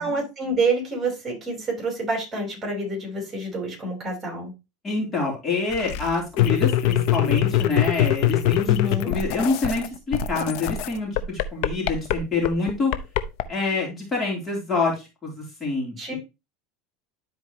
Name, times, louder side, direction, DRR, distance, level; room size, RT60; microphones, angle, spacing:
voice 1, 0.0-4.5 8.6-9.1 16.0-16.2, right 2 dB, 20° right, -1 dB, 5.1 m, -27 dB
voice 2, 4.8-12.9 13.5-16.1, left 3 dB, 25° left, -3 dB, 3.6 m, -26 dB
sound 1, 5.7-9.9 10.1-13.4, left 12 dB, 65° left, 0.8 m, -22 dB
12.0 x 4.6 x 3.2 m, 0.26 s
supercardioid pair, 120°, 0 cm